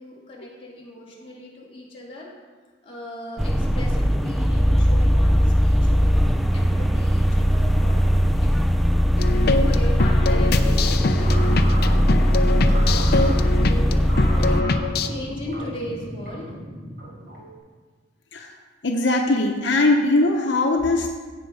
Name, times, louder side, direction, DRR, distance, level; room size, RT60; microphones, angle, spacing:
voice 1, 0.0-2.3 2.8-8.1 8.4-8.7 9.6-11.3 11.8-13.9 14.3-16.6, left 1 dB, 30° left, -5 dB, 2.7 m, -38 dB
sound 1, 3.4-14.6, equal, ahead, 0.4 m, -19 dB
sound 2, 9.2-15.1, left 3 dB, 60° left, 0.6 m, -24 dB
sound 3, 10.8-17.6, equal, 60° right, 3.4 m, -36 dB
voice 2, 18.8-21.1, left 2 dB, 85° left, 2 dB, 0.9 m, -20 dB
16.0 x 5.3 x 4.9 m, 1.4 s
head